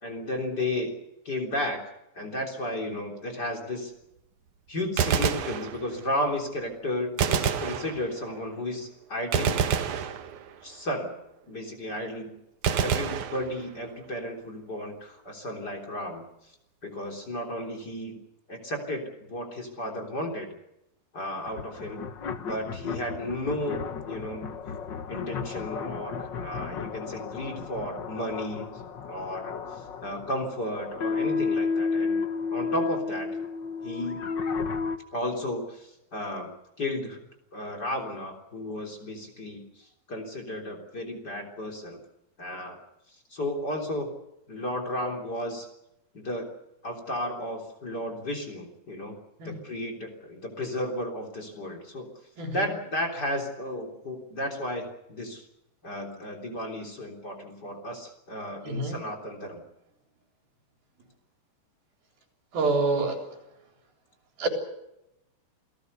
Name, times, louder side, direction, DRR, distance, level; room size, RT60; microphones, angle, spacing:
voice 1, 0.0-0.9 1.3-1.8 2.2-3.9 4.7-9.6 10.6-11.1 11.5-12.3 12.8-16.2 16.8-18.2 18.5-19.0 19.3-20.5 21.1-22.0 22.4-24.5 25.1-28.7 29.1-32.2 32.5-33.3 33.8-34.3 35.1-36.5 36.8-37.2 37.5-42.0 42.4-42.8 43.3-44.1 44.5-45.7 46.1-46.5 46.8-49.1 49.4-52.1 52.5-55.4 55.8-59.6, left 1 dB, 30° left, 5 dB, 3.8 m, -33 dB
Gunshot gunfire, 4.8-6.2 7.2-8.4 9.3-10.8 12.6-14.0, right 7 dB, 60° right, 2.6 m, -28 dB
sound 1, 21.5-35.0, left 5 dB, 65° left, 1.1 m, -32 dB
voice 2, 62.5-63.2 64.4-64.5, right 3 dB, 85° right, 3 dB, 5.8 m, -26 dB
28.0 x 19.0 x 6.8 m, 0.86 s
omnidirectional pair, 4.2 m